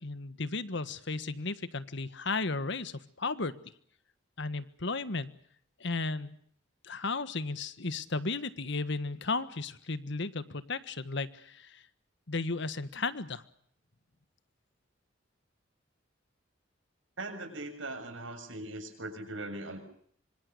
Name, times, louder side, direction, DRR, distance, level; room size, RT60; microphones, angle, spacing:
voice 1, 0.0-3.5 4.4-5.3 5.8-6.4 6.8-11.8 12.3-13.4, left 3 dB, 65° left, 13 dB, 1.5 m, -34 dB
voice 2, 17.2-19.8, right 2 dB, 90° right, 7 dB, 7.1 m, -40 dB
26.0 x 25.5 x 6.8 m, 0.64 s
head